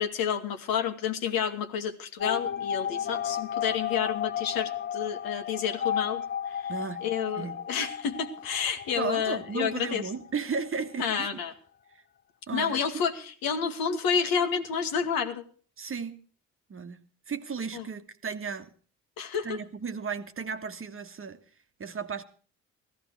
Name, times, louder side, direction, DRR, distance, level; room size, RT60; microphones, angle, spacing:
voice 1, 0.0-6.7 7.0-10.0 11.0-11.5 12.5-15.4 17.7-17.8 19.2-19.6, left 7 dB, 60° left, 1.6 m, -30 dB
sound 1, 2.2-10.7 11.0-11.1 11.3-11.4, left 9 dB, 25° left, 0.7 m, -33 dB
voice 2, 6.7-7.0 7.4-7.6 8.9-11.4 11.9-12.0 12.5-12.8 15.8-16.2 16.7-17.0 17.3-18.7 19.4-21.4 21.8-22.2, right 5 dB, 30° right, 1.4 m, -34 dB
15.5 x 14.0 x 4.7 m
figure-of-eight pair, 45°, 40 cm